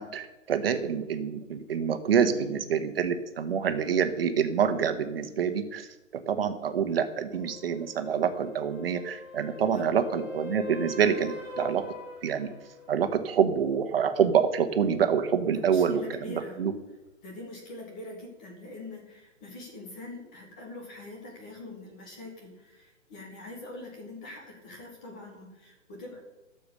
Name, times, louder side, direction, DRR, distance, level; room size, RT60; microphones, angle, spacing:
voice 1, 0.0-11.8 12.2-12.5 12.9-16.7, right 7 dB, 50° right, 8 dB, 1.2 m, -27 dB
voice 2, 2.3-2.6 9.6-9.9 15.5-16.6 17.2-26.2, left 2 dB, 5° left, 1 dB, 0.5 m, -44 dB
sound 1, 7.3-13.0 17.1-17.2, left 2 dB, 75° left, 4.1 m, -42 dB
12.0 x 7.0 x 6.6 m, 1.0 s
hypercardioid pair, 160°, 38 cm